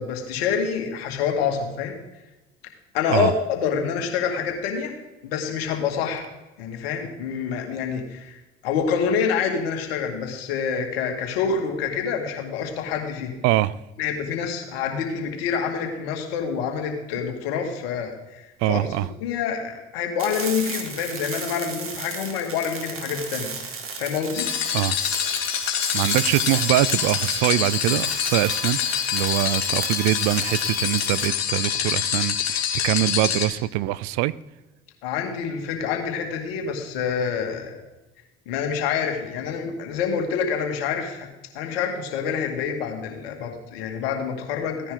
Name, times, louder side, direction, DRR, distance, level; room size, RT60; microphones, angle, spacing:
voice 1, 0.0-2.0 2.9-4.9 5.2-6.3 6.6-13.4 14.0-24.5 35.0-37.8 38.5-41.3 41.5-44.9, left 6 dB, 80° left, 3 dB, 2.2 m, -27 dB
voice 2, 13.4-13.8 18.6-19.1 24.7-25.0 25.9-28.8 29.1-34.3, right 16 dB, 65° right, 20 dB, 0.6 m, -23 dB
sound 1, 20.2-31.3, right 5 dB, 45° right, 2.4 m, -35 dB
sound 2, 24.3-33.4, left 9 dB, 60° left, 2.4 m, -26 dB
15.5 x 10.0 x 3.9 m, 1.1 s
hypercardioid pair, 65°, 30 cm